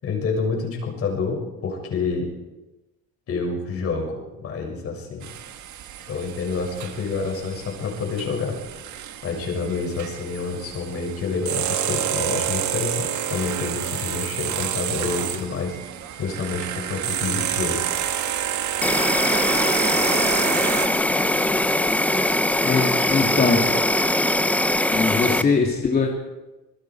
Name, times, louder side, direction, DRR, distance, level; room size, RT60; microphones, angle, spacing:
voice 1, 0.0-2.3 3.3-5.3 6.0-8.6 9.2-15.8 16.2-17.9, left 4 dB, 50° left, 1 dB, 6.8 m, -28 dB
sound 1, 5.2-20.9, right 10 dB, 65° right, 1.8 m, -29 dB
Insect, 18.8-25.4, left 1 dB, 5° left, 0.8 m, -21 dB
voice 2, 22.6-23.8 24.9-26.1, left 4 dB, 30° left, -1 dB, 2.7 m, -22 dB
26.5 x 21.0 x 4.8 m, 1.1 s
cardioid pair, 140°, 31 cm